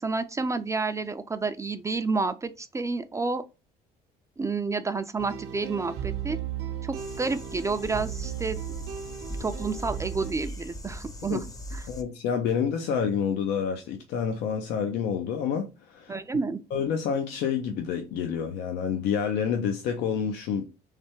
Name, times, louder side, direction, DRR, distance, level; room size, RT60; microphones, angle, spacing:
voice 1, 0.0-3.4 4.4-6.4 6.8-8.6 9.4-11.4 11.7-11.8 16.1-16.6, right 4 dB, 20° right, 0.4 m, -30 dB
sound 1, 5.2-10.3, right 10 dB, 80° right, 0.7 m, -36 dB
sound 2, 6.9-12.0, equal, 20° left, 0.6 m, -40 dB
voice 2, 11.9-16.2 16.7-20.7, left 7 dB, 85° left, 0.6 m, -28 dB
3.3 x 3.2 x 4.4 m
cardioid pair, 110°, 17 cm